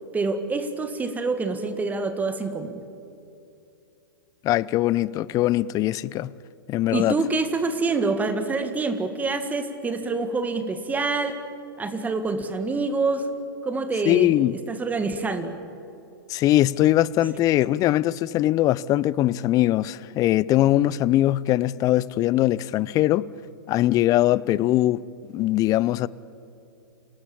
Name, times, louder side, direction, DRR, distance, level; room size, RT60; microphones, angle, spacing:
voice 1, 0.1-2.8 6.9-11.4 11.8-13.3 13.6-14.4 14.7-15.6, right 3 dB, 15° right, 1.8 m, -26 dB
voice 2, 4.4-6.3 6.7-7.2 14.1-14.6 16.3-23.3 23.7-25.0 25.3-26.1, left 14 dB, 30° left, 0.6 m, -21 dB
27.5 x 18.0 x 8.7 m
hypercardioid pair, 115°, 12 cm